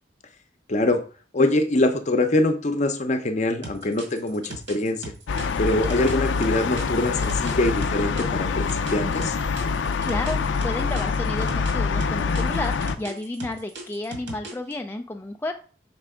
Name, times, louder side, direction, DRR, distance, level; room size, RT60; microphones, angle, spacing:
voice 1, 0.7-1.0 1.3-5.1 5.6-9.4, left 2 dB, 40° left, 8 dB, 0.7 m, -23 dB
sound 1, 3.6-8.3 8.7-11.7 12.0-14.7, right 2 dB, 80° right, 1.9 m, -38 dB
sound 2, 5.3-13.0, left 5 dB, 80° left, 0.4 m, -25 dB
voice 2, 10.1-15.5, left 2 dB, 10° left, 4 dB, 0.3 m, -32 dB
6.0 x 3.3 x 4.9 m, 0.40 s
head